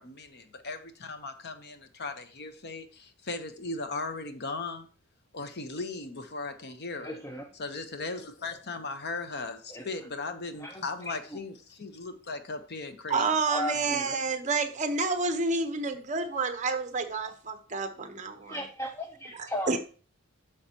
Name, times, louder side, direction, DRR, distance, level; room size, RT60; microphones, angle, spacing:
voice 1, 0.0-4.9 5.3-7.2 7.6-13.3, left 3 dB, 55° left, 0.9 m, -37 dB
voice 2, 7.0-7.4 9.7-9.8 10.6-11.4 13.5-14.2 18.4-19.8, equal, 15° left, 0.6 m, -36 dB
voice 3, 13.1-18.6 19.3-19.8, right 4 dB, 35° right, 1.0 m, -29 dB
9.7 x 6.5 x 2.9 m
head